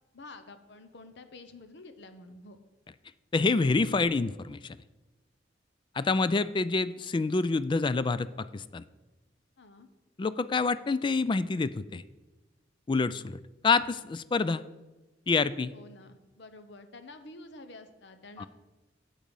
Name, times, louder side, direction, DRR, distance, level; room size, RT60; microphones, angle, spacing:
voice 1, 0.1-2.6 9.6-9.9 15.7-18.5, left 2 dB, 65° left, 9 dB, 0.9 m, -49 dB
voice 2, 3.3-4.8 6.0-8.8 10.2-12.0 12.9-14.6 15.3-15.7 18.4-18.5, left 4 dB, 25° left, 15 dB, 0.3 m, -27 dB
8.8 x 7.5 x 5.3 m, 1.2 s
head